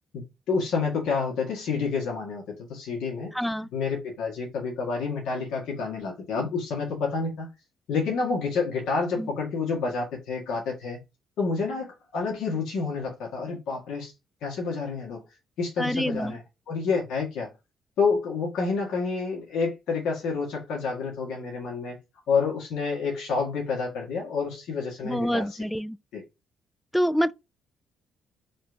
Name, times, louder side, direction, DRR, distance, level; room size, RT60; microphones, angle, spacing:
voice 1, 0.1-3.3 3.7-7.5 7.9-11.0 11.4-14.1 14.4-15.2 15.6-16.4 16.7-17.5 18.0-22.0 22.3-25.5 26.1-26.2, left 4 dB, 85° left, 1.6 m, -29 dB
voice 2, 3.3-3.7 9.2-9.3 15.8-16.4 25.0-26.0 26.9-27.3, equal, 5° left, 0.3 m, -26 dB
4.2 x 2.7 x 4.5 m
cardioid pair, 90°, 0 cm